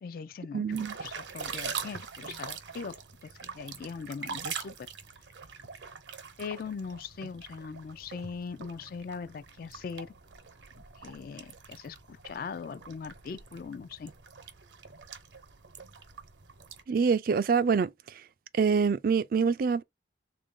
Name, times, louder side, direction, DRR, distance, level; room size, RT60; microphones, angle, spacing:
voice 1, 0.0-4.9 6.4-10.1 11.0-14.1, left 5 dB, 50° left, 0.3 m, -40 dB
voice 2, 0.5-0.9 16.9-18.2 18.5-19.8, right 5 dB, 50° right, 0.3 m, -26 dB
sound 1, 0.7-16.8, right 6 dB, 80° right, 0.8 m, -43 dB
3.7 x 2.5 x 3.6 m
head